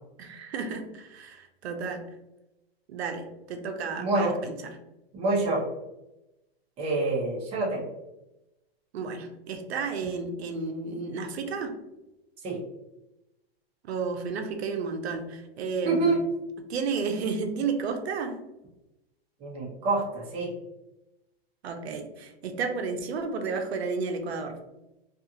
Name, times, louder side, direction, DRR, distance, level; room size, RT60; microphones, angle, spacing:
voice 1, 0.2-2.0 2.9-4.8 8.9-11.8 13.9-16.1 16.7-18.4 21.6-24.6, right 4 dB, 85° right, 5 dB, 0.6 m, -32 dB
voice 2, 4.0-4.3 5.1-5.6 6.8-7.8 12.4-12.6 15.8-16.2 19.4-20.5, right 3 dB, 20° right, -4 dB, 0.7 m, -26 dB
2.4 x 2.4 x 2.7 m, 0.94 s
hypercardioid pair, 145°, 31 cm